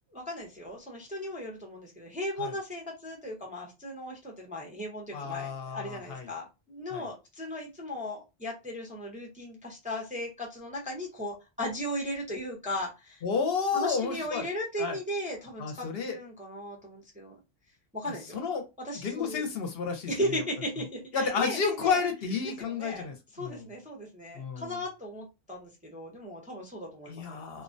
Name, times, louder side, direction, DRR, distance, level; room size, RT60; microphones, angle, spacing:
voice 1, 0.1-13.2 13.7-17.4 17.9-18.4 18.8-19.4 20.1-22.1 22.6-23.1 23.3-27.4, equal, 10° right, -1 dB, 0.4 m, -37 dB
voice 2, 5.1-6.3 6.9-7.1 13.2-14.5 14.8-15.0 15.6-16.2 18.3-18.6 19.0-20.1 21.1-23.7 24.3-24.8 27.1-27.6, left 5 dB, 65° left, 5 dB, 0.7 m, -31 dB
2.3 x 2.1 x 2.5 m, 0.25 s
omnidirectional pair, 1.1 m